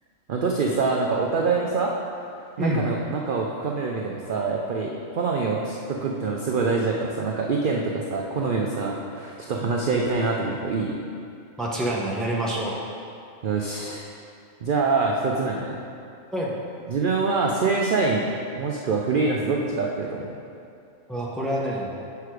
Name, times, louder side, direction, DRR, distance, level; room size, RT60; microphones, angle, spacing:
voice 1, 0.3-1.9 2.6-11.0 13.4-14.1 14.6-15.8 16.9-18.3 18.6-20.4, right 4 dB, 55° right, -1 dB, 0.6 m, -25 dB
voice 2, 11.6-12.8 16.3-16.6 21.1-21.9, right 1 dB, ahead, -4 dB, 0.7 m, -27 dB
6.6 x 5.8 x 4.7 m, 2.5 s
omnidirectional pair, 1.4 m